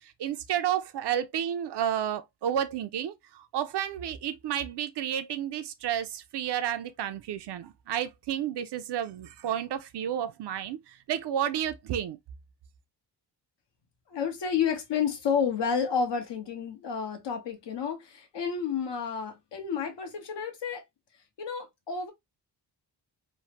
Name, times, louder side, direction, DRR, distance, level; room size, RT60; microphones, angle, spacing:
voice 1, 0.0-12.2, right 10 dB, 75° right, 0.6 m, -31 dB
voice 2, 14.1-20.8 21.4-22.1, left 6 dB, 85° left, 1.0 m, -30 dB
3.1 x 2.0 x 2.7 m
wide cardioid pair, 110°, 41 cm